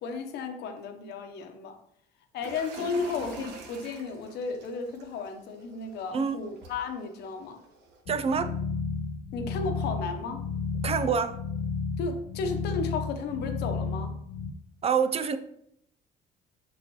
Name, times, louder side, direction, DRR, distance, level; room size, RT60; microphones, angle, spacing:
voice 1, 0.0-1.8 2.3-7.6 9.3-10.5 12.0-14.1, left 4 dB, 75° left, 5 dB, 1.0 m, -34 dB
sound 1, 2.4-8.0, right 3 dB, 80° right, 1.2 m, -46 dB
sound 2, 8.1-14.5, left 4 dB, 60° left, 0.6 m, -32 dB
voice 2, 8.1-8.5 10.8-11.3 14.8-15.4, right 6 dB, 35° right, 11 dB, 0.5 m, -26 dB
6.7 x 6.2 x 3.1 m, 0.71 s
cardioid pair, 110°, 17 cm